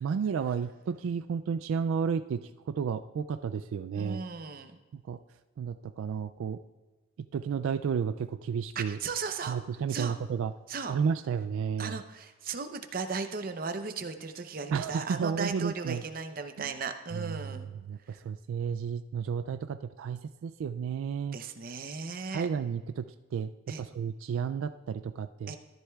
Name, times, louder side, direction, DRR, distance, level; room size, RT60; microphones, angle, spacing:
voice 1, 0.0-4.2 4.9-5.2 5.6-6.6 7.3-9.0 9.5-10.5 10.9-12.0 14.7-16.0 16.6-16.7 17.1-17.6 17.9-21.4 22.3-23.0 23.3-23.5 23.8-25.5, right 6 dB, 80° right, 10 dB, 0.3 m, -32 dB
voice 2, 3.9-4.8 8.8-9.5 9.9-10.2 10.7-11.0 11.8-17.7 18.1-18.2 21.3-22.5 23.7-23.8 25.5-25.6, right 4 dB, 45° right, 7 dB, 0.6 m, -36 dB
13.5 x 11.0 x 2.3 m, 1.3 s
head